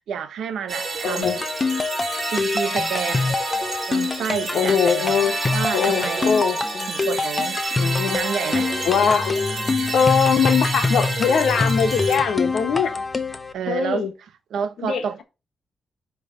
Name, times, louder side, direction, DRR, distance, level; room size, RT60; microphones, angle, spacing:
voice 1, 0.1-1.4 2.3-3.4 3.9-5.1 5.5-6.4 6.9-7.6 8.1-8.8 13.5-14.1 14.5-15.2, right 7 dB, 80° right, 0.9 m, -29 dB
sound 1, 0.7-12.2, right 3 dB, 30° right, 2.1 m, -30 dB
voice 2, 1.0-1.4 4.5-5.4 5.7-6.9 7.8-8.2 8.8-9.4 9.9-12.9 13.7-14.1 14.8-15.2, left 6 dB, 75° left, 1.3 m, -21 dB
sound 2, 1.2-13.5, left 3 dB, 20° left, 0.5 m, -25 dB
sound 3, 8.7-13.5, left 2 dB, 50° left, 1.3 m, -36 dB
9.7 x 3.3 x 5.0 m
wide cardioid pair, 170°, 0 cm